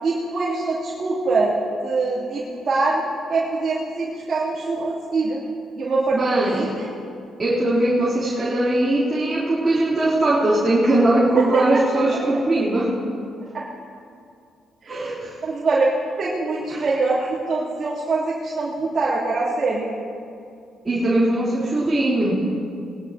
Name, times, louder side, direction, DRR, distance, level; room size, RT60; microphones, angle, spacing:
voice 1, 0.0-3.0 3.3-5.4 5.8-6.9 11.3-11.8 13.5-13.6 14.8-15.1 15.4-19.9, right 3 dB, 45° right, -9 dB, 3.2 m, -23 dB
voice 2, 6.1-6.6 7.4-12.9 14.9-15.3 16.7-16.8 20.8-22.4, right 1 dB, 25° right, -10 dB, 3.6 m, -20 dB
21.0 x 12.0 x 3.0 m, 2.4 s
cardioid pair, 90°, 0 cm